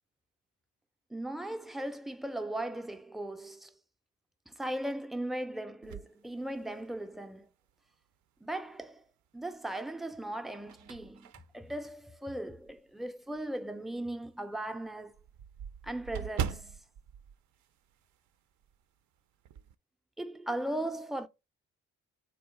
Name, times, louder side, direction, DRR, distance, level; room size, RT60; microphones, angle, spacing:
voice 1, 1.1-3.7 4.5-7.5 8.4-9.0 9.3-15.1 15.8-16.8 20.2-21.3, right 1 dB, ahead, 0.4 m, -38 dB
sound 1, 5.8-7.2 7.7-7.8 9.3-9.8 10.3-12.9 13.3-13.5 13.8-13.9 14.2-14.3 14.6-18.4 18.6-18.8 19.2-19.8, right 8 dB, 70° right, 0.5 m, -41 dB
3.9 x 2.8 x 4.8 m
cardioid pair, 90°, 30 cm